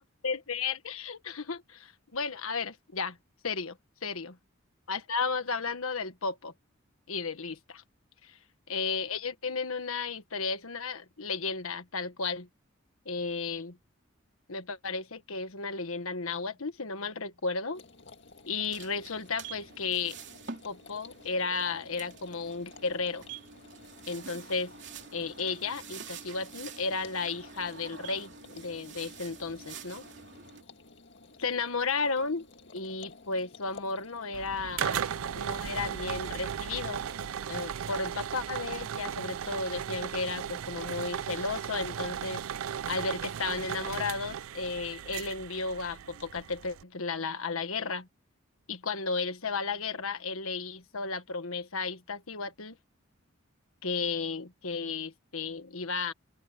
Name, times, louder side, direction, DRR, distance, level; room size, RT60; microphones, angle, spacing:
voice 1, 0.2-3.2 3.4-3.8 4.0-4.4 4.9-6.5 7.1-7.8 8.2-8.4 8.7-12.5 13.0-13.8 14.5-17.8 18.5-20.2 20.6-23.2 24.1-24.7 25.1-30.0 31.4-32.4 32.7-35.0 35.3-37.0 37.5-42.4 42.9-48.1 48.7-52.8 53.8-56.1, left 4 dB, 90° left, 1.5 m, -34 dB
sound 1, 17.7-37.3, left 3 dB, 55° left, 2.0 m, -54 dB
sound 2, 18.7-30.6, right 6 dB, 55° right, 3.1 m, -47 dB
sound 3, 34.3-46.8, right 8 dB, 80° right, 0.4 m, -36 dB
open air
head